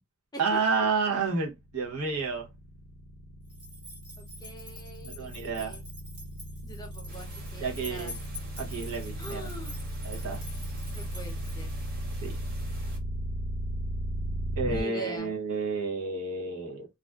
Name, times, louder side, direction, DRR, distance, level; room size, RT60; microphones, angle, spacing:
voice 1, 0.4-2.5 5.0-5.8 7.6-8.2 8.6-9.5 10.0-10.4 12.2-12.4 14.6-16.9, right 4 dB, 90° right, 0.7 m, -30 dB
sound 1, 1.5-14.8, right 1 dB, 90° left, 0.4 m, -36 dB
sound 2, 3.5-11.8, equal, 25° right, 1.0 m, -47 dB
voice 2, 4.2-5.3 5.6-5.8 6.6-8.1 9.2-9.8 10.9-11.7 14.7-15.3, right 1 dB, 20° left, 0.5 m, -42 dB
sound 3, 7.1-13.0, right 2 dB, 45° right, 0.6 m, -48 dB
2.4 x 2.3 x 2.2 m
head